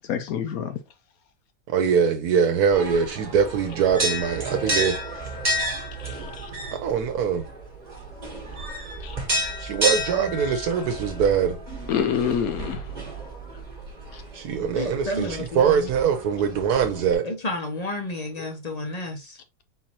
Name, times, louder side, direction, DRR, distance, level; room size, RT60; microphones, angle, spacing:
voice 1, 0.1-0.8 6.0-6.5 9.0-9.4 11.9-12.9 14.1-14.2 14.8-14.9, left 8 dB, 70° left, 1.0 m, -28 dB
voice 2, 1.7-5.0 6.8-7.4 9.6-11.6 14.3-17.3, right 7 dB, 80° right, 1.1 m, -22 dB
sound 1, 2.7-17.1, right 1 dB, 30° right, 1.2 m, -31 dB
voice 3, 14.7-15.9 17.2-19.4, left 1 dB, 35° left, 0.6 m, -31 dB
4.3 x 3.8 x 2.8 m
omnidirectional pair, 1.6 m